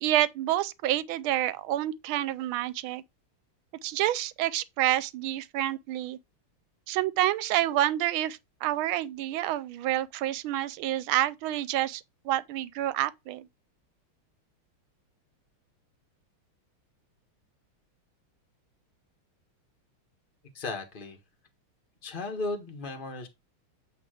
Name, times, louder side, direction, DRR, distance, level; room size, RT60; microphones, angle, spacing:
voice 1, 0.0-3.0 3.8-6.2 6.9-13.5, right 14 dB, 80° right, 1.4 m, -28 dB
voice 2, 20.5-21.2 22.0-23.3, left 3 dB, 25° left, 1.4 m, -35 dB
8.3 x 3.5 x 4.9 m
omnidirectional pair, 2.3 m